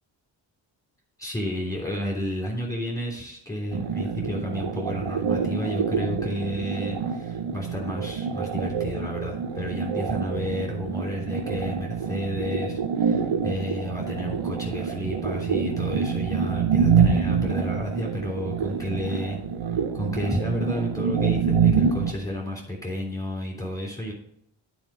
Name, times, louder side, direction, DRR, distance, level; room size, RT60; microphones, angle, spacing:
voice 1, 1.2-19.4 19.9-24.1, left 1 dB, 5° left, -2 dB, 3.3 m, -31 dB
sound 1, 3.7-22.1, right 6 dB, 65° right, 0.9 m, -26 dB
8.9 x 4.7 x 6.3 m, 0.71 s
cardioid pair, 45°, 49 cm